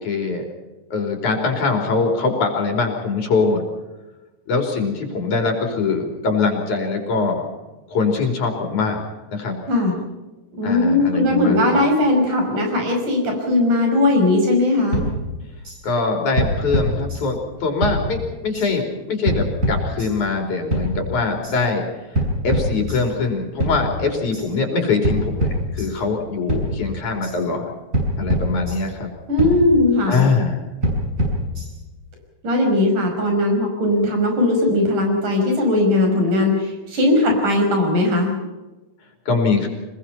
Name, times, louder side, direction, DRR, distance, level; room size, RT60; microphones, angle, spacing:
voice 1, 0.0-0.4 0.9-3.6 4.5-7.5 7.9-9.5 10.6-11.8 15.8-21.8 22.1-27.7 28.2-29.1 30.1-30.6 39.3-39.7, left 4 dB, 75° left, 2 dB, 4.7 m, -22 dB
voice 2, 10.5-15.0 29.3-30.3 32.4-38.3, left 2 dB, 80° right, 3 dB, 7.1 m, -18 dB
sound 1, 14.9-15.8 16.4-17.5 17.8-18.7 19.3-20.4 20.7-21.6 22.2-23.3 23.6-24.5 25.0-26.2 26.5-27.4 27.9-29.1 29.4-30.3 30.8-32.0, equal, 25° right, 7.0 m, -25 dB
25.5 x 21.5 x 5.8 m, 1.1 s
omnidirectional pair, 3.5 m